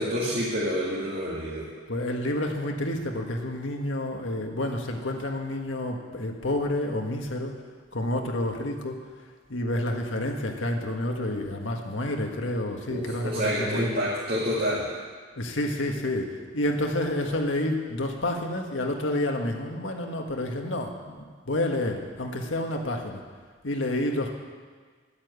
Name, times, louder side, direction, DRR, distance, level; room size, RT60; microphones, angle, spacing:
voice 1, 0.0-1.7 12.9-14.9, equal, 50° right, -8 dB, 2.2 m, -28 dB
voice 2, 1.9-7.5 7.9-9.0 9.5-13.9 15.4-23.2 23.6-24.3, left 1 dB, 85° left, 2 dB, 1.6 m, -29 dB
11.5 x 8.8 x 8.2 m, 1.5 s
head